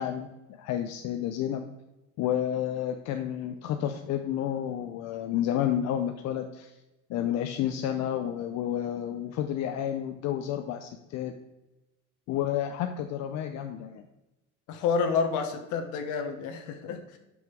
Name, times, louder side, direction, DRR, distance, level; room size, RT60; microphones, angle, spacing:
voice 1, 0.0-1.6 2.2-6.7 7.1-11.3 12.3-14.0, left 10 dB, 60° left, 6 dB, 0.7 m, -30 dB
voice 2, 14.7-17.2, left 5 dB, 75° left, 6 dB, 1.3 m, -29 dB
6.1 x 5.6 x 6.1 m, 1.0 s
cardioid pair, 140°, 30 cm